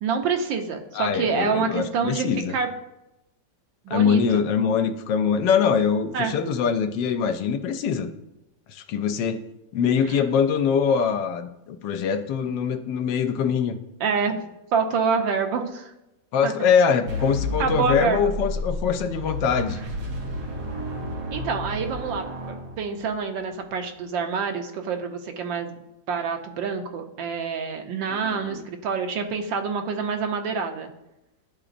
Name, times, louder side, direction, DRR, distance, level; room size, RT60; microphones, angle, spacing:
voice 1, 0.0-2.7 3.8-4.4 6.1-6.3 10.1-10.2 14.0-15.9 16.4-16.7 17.6-18.3 21.3-25.7 26.1-30.9, right 5 dB, 90° right, 5 dB, 1.5 m, -27 dB
voice 2, 0.9-2.5 3.9-8.1 8.7-9.4 9.7-13.8 16.3-19.8 28.1-28.6, left 6 dB, 80° left, 8 dB, 1.2 m, -23 dB
sound 1, 17.1-23.2, equal, 65° right, 1.5 m, -31 dB
11.5 x 3.9 x 2.5 m, 0.91 s
omnidirectional pair, 2.0 m